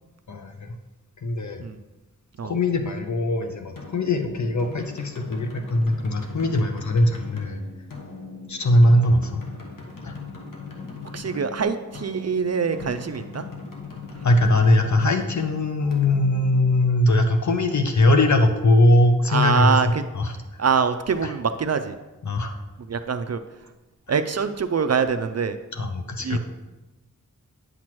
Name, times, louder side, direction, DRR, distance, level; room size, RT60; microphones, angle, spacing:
voice 1, 0.3-0.8 1.2-1.6 2.4-7.6 8.5-9.4 10.0-10.1 14.2-20.6 21.2-21.3 22.2-22.6 25.7-26.4, left 1 dB, 60° left, 5 dB, 0.7 m, -21 dB
sound 1, 3.8-17.3, left 4 dB, 75° left, 1.2 m, -39 dB
voice 2, 11.1-13.4 19.3-20.0 20.6-22.0 22.9-23.4 24.1-25.6 26.2-26.4, right 6 dB, 50° right, 9 dB, 0.4 m, -24 dB
9.3 x 5.9 x 3.1 m, 1.1 s
wide cardioid pair, 65°, 33 cm